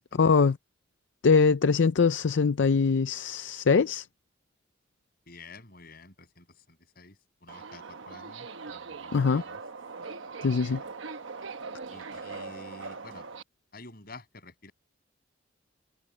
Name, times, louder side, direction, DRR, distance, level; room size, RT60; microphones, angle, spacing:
voice 1, 0.1-0.6 1.2-4.1 9.1-9.4 10.4-10.8, left 5 dB, 70° left, 0.5 m, -22 dB
voice 2, 5.3-9.6 10.7-10.9 11.9-13.3 13.7-14.7, left 3 dB, 50° left, 7.3 m, -50 dB
Subway metro underground, 7.5-13.4, right 4 dB, 80° right, 1.1 m, -41 dB
head